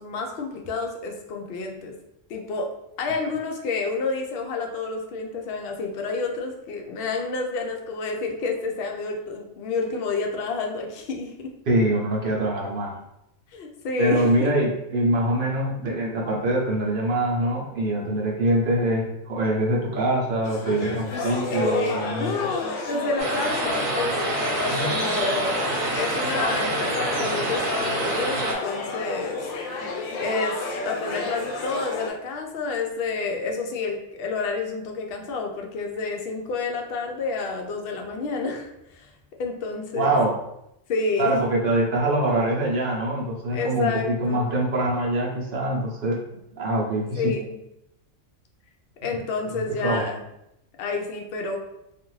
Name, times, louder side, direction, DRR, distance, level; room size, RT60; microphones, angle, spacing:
voice 1, 0.0-1.9 2.3-2.7 3.0-11.5 13.5-14.5 21.5-25.7 25.9-29.4 29.8-39.1 39.4-40.1 40.9-41.3 43.5-44.5 47.2-47.6 49.0-50.2 50.8-51.6, left 4 dB, 65° left, 2 dB, 0.6 m, -29 dB
voice 2, 11.7-13.0 14.0-22.3 24.7-25.2 39.9-40.4 41.2-46.2 46.5-47.4 49.5-50.1, right 1 dB, 50° right, -2 dB, 0.7 m, -24 dB
sound 1, 20.4-32.1, left 3 dB, 90° left, 1.0 m, -31 dB
sound 2, 23.2-28.5, right 2 dB, 80° right, 1.1 m, -27 dB
2.5 x 2.4 x 3.0 m, 0.82 s
omnidirectional pair, 1.4 m